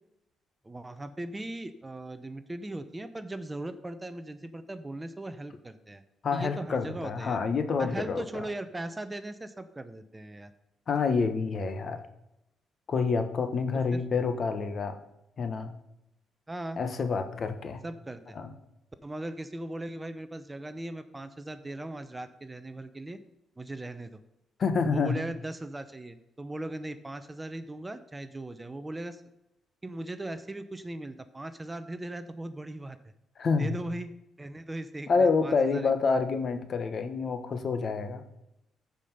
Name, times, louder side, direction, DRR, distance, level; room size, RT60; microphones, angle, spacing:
voice 1, 0.6-6.0 6.3-7.4 7.8-10.5 13.7-14.0 16.5-16.8 17.8-18.4 19.0-23.2 23.6-24.2 24.9-29.2 29.8-33.1 33.6-34.1 34.4-36.0, right 1 dB, 15° right, 11 dB, 0.7 m, -39 dB
voice 2, 6.2-8.4 10.9-12.0 12.9-15.0 15.4-15.7 16.8-17.8 18.3-18.5 24.6-25.2 33.4-33.8 35.1-38.2, left 4 dB, 50° left, 9 dB, 1.1 m, -28 dB
14.0 x 5.1 x 5.4 m, 0.87 s
cardioid pair, 90°, 0 cm